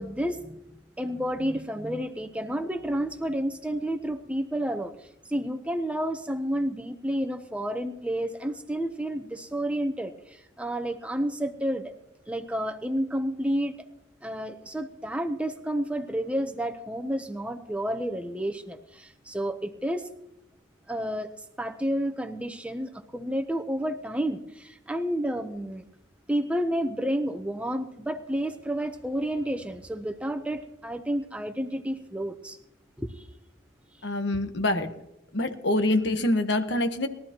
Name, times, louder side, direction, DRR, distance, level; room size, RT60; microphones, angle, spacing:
voice 1, 0.0-11.9 12.3-13.8 14.2-20.1 20.9-25.9 26.3-32.6 33.0-33.3, equal, 5° right, 0.8 m, -30 dB
voice 2, 34.0-34.9 35.3-37.1, left 1 dB, 60° left, 1.3 m, -25 dB
21.5 x 13.0 x 3.0 m
head